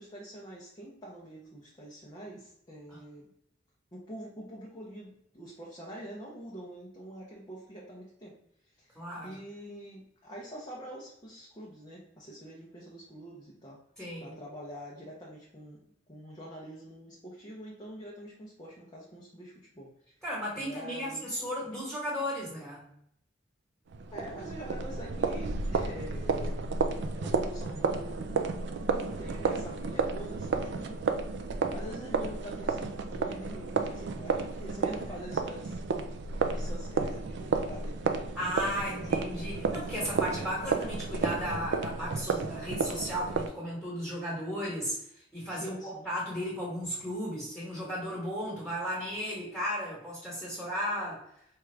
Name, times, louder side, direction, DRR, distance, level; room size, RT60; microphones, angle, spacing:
voice 1, 0.0-3.3 3.9-8.4 8.6-13.8 14.2-20.2 20.5-21.3 24.1-26.6 27.2-28.3 29.0-31.1 31.7-35.8 36.5-38.2 38.7-39.2 45.5-46.1, equal, 20° left, -4 dB, 0.6 m, -45 dB
voice 2, 8.9-9.4 14.0-14.3 20.2-22.9 38.3-51.2, equal, 5° left, -5 dB, 1.3 m, -35 dB
sound 1, 23.9-43.5, right 4 dB, 65° right, 0.4 m, -32 dB
4.6 x 2.4 x 3.2 m, 0.73 s
head